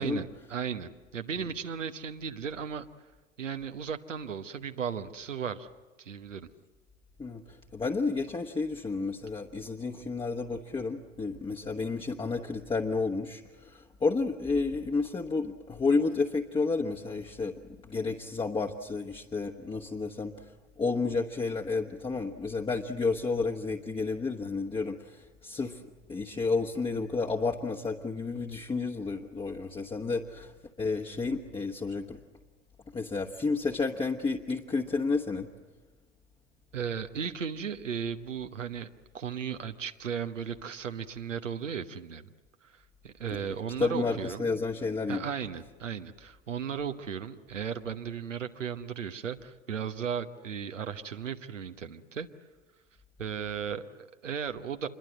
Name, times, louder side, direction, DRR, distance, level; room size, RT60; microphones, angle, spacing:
voice 1, 0.0-2.9 3.4-5.7 6.0-6.5 36.7-38.9 39.1-42.3 42.6-44.4 45.1-52.3 53.2-54.9, right 7 dB, 80° right, 7 dB, 1.1 m, -36 dB
voice 2, 7.2-25.8 26.1-32.2 32.9-35.5 43.3-43.4 43.8-45.3, left 4 dB, 15° left, 1 dB, 1.2 m, -31 dB
27.0 x 22.0 x 7.7 m, 1.2 s
figure-of-eight pair, 75°, 37 cm